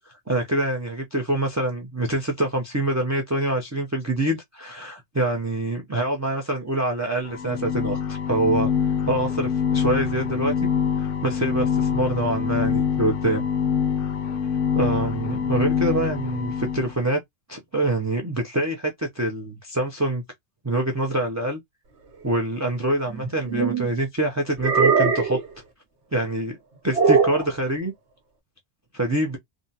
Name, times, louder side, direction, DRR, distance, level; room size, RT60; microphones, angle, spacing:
voice 1, 0.1-8.7 9.1-10.7 11.0-13.4 14.7-17.2 17.5-20.2 20.6-21.6 22.2-25.4 26.1-26.6 26.8-27.9 28.9-29.4, right 1 dB, 25° right, 0.3 m, -25 dB
sound 1, 7.3-16.9, left 7 dB, 60° left, 0.7 m, -25 dB
sound 2, 23.1-23.9 24.6-25.5 26.9-27.5, right 5 dB, 85° right, 1.0 m, -20 dB
3.4 x 2.0 x 2.7 m
omnidirectional pair, 1.1 m